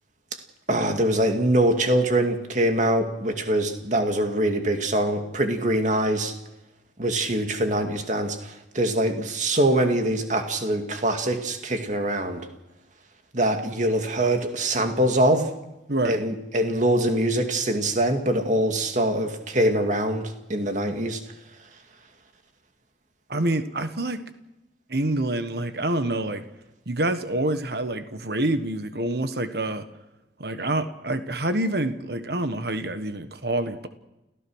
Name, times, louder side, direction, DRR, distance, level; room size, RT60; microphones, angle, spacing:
voice 1, 0.7-6.3 7.0-12.4 13.3-15.5 16.0-21.2, right 1 dB, 45° right, 5 dB, 2.3 m, -23 dB
voice 2, 15.9-16.2 23.3-24.2 24.9-26.4 26.9-29.9 30.4-33.9, right 1 dB, 60° right, 10 dB, 1.4 m, -27 dB
29.5 x 15.5 x 6.3 m, 0.97 s
head